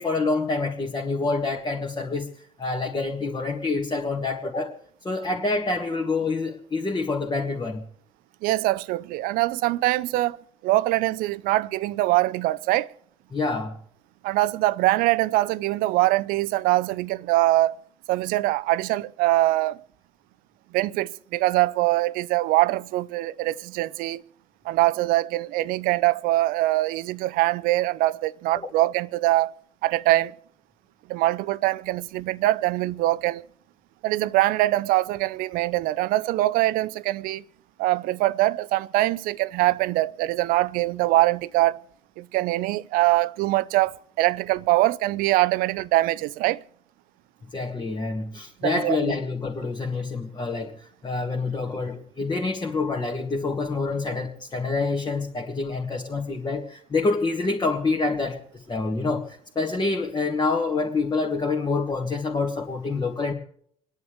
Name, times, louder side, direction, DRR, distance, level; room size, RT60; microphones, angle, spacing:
voice 1, 0.0-2.3 2.6-4.7 5.0-7.8 13.3-13.8 28.6-28.7 47.5-50.7 51.0-63.3, left 3 dB, 25° left, 2.0 m, -27 dB
voice 2, 8.4-12.9 14.2-17.8 18.1-19.8 20.7-24.2 24.6-29.5 29.8-30.3 31.1-33.4 34.0-37.4 37.8-41.8 42.2-46.6 48.6-49.1, right 17 dB, 55° right, 0.6 m, -23 dB
28.5 x 10.5 x 3.3 m
figure-of-eight pair, 50°, 17 cm